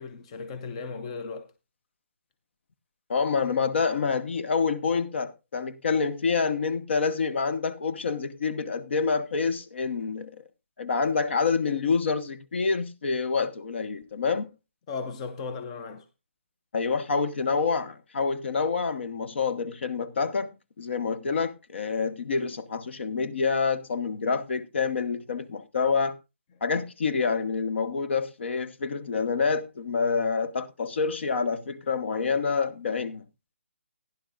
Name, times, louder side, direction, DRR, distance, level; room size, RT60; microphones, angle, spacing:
voice 1, 0.0-1.5 14.9-16.0, left 4 dB, 25° left, 0.7 m, -36 dB
voice 2, 3.1-10.4 10.8-14.5 16.7-20.5 20.8-26.2 26.6-33.2, left 5 dB, 60° left, 1.0 m, -27 dB
15.5 x 11.0 x 2.5 m
hypercardioid pair, 160°, 7 cm